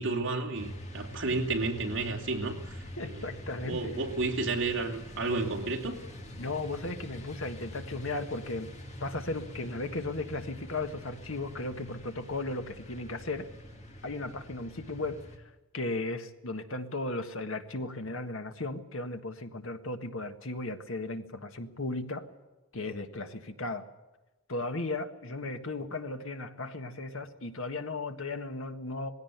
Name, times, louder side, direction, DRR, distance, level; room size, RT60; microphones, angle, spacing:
voice 1, 0.0-3.3 3.6-6.0, right 3 dB, 60° right, 3.0 m, -32 dB
sound 1, 0.5-15.4, left 1 dB, 35° left, 2.6 m, -45 dB
voice 2, 3.0-4.1 6.4-8.7 9.0-13.5 14.0-15.2 15.7-22.3 22.7-23.9 24.5-29.1, left 2 dB, 70° left, 1.6 m, -36 dB
20.5 x 16.5 x 8.1 m
head